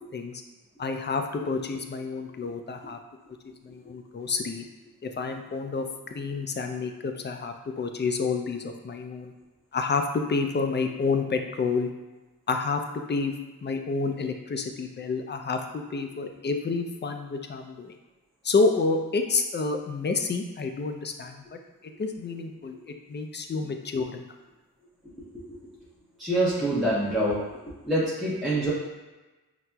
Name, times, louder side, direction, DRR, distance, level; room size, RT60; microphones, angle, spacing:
voice 1, 0.8-3.0 3.6-4.6 5.0-9.3 9.7-11.9 12.5-12.8 13.1-13.3 13.6-17.9 18.4-21.6 22.0-24.3, left 4 dB, 30° left, 5 dB, 0.4 m, -29 dB
voice 2, 26.2-27.4 27.8-28.7, right 1 dB, ahead, -9 dB, 0.7 m, -25 dB
5.6 x 2.0 x 2.2 m, 1.1 s
cardioid pair, 60°, 36 cm